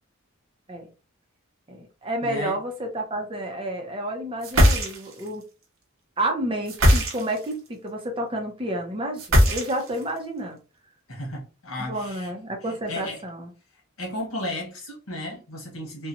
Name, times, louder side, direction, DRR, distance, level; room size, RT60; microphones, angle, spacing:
voice 1, 1.7-5.4 6.2-10.6 11.8-13.5, right 1 dB, 25° right, 0.6 m, -30 dB
voice 2, 2.2-2.6 11.1-12.3 12.6-13.2 14.0-16.1, left 1 dB, 75° left, 1.1 m, -34 dB
sound 1, 4.4-5.3 6.7-7.5 9.2-10.0, equal, 75° right, 0.8 m, -19 dB
2.9 x 2.2 x 2.5 m
head